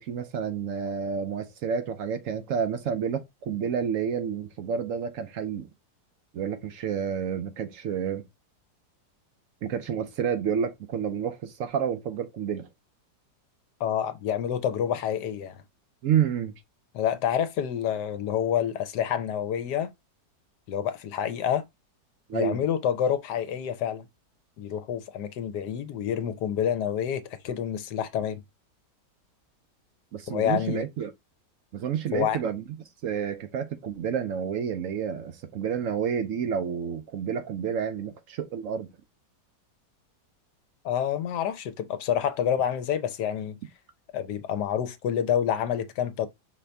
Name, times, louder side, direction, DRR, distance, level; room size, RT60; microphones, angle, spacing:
voice 1, 0.0-5.7 6.3-8.2 9.6-12.7 16.0-16.5 22.3-22.6 30.1-31.1 31.7-32.6 33.0-38.9, right 7 dB, 65° right, 0.8 m, -29 dB
voice 2, 13.8-15.6 16.9-19.9 20.7-21.6 22.3-24.1 24.6-28.4 30.3-30.9 32.1-32.4 40.8-43.6 44.1-46.3, left 9 dB, 75° left, 1.2 m, -28 dB
5.6 x 2.6 x 3.4 m
omnidirectional pair, 1.9 m